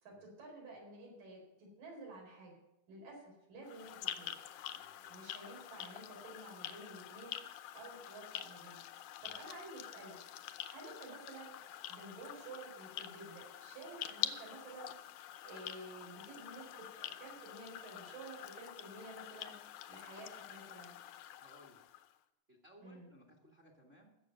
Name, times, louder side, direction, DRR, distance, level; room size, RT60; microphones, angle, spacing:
voice 1, 0.0-2.6 2.9-3.9 4.2-4.3 5.1-7.3 7.7-8.8 9.2-10.2 10.7-11.5 11.9-14.9 15.4-16.7 16.9-19.5 19.9-20.9 22.8-23.1, right 2 dB, 85° right, -2 dB, 6.0 m, -51 dB
sound 1, 3.6-22.1, left 12 dB, 75° left, 2.0 m, -46 dB
voice 2, 3.8-4.1 4.7-5.1 9.2-9.4 21.4-22.0 22.5-24.2, equal, 25° right, 1 dB, 1.4 m, -63 dB
15.5 x 7.1 x 7.6 m, 0.90 s
omnidirectional pair, 3.8 m